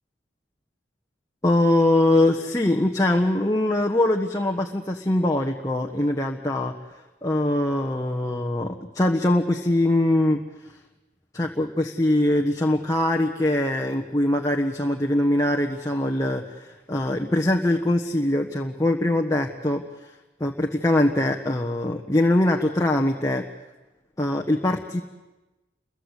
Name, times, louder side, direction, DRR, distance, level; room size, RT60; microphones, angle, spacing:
voice 1, 1.4-6.7 7.2-10.8 11.3-20.1 20.4-23.4 24.2-25.0, left 1 dB, 15° left, 1 dB, 1.3 m, -22 dB
29.5 x 23.0 x 8.3 m, 1.1 s
head